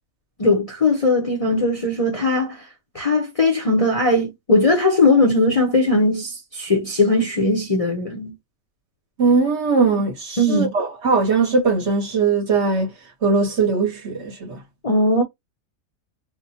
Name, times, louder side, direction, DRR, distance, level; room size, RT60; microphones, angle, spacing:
voice 1, 0.4-2.7 2.9-8.3 10.4-10.7 14.8-15.2, left 2 dB, 35° left, 0.6 m, -19 dB
voice 2, 9.2-12.9 13.2-14.6, right 4 dB, 55° right, 1.3 m, -20 dB
4.2 x 2.1 x 2.8 m
omnidirectional pair, 1.4 m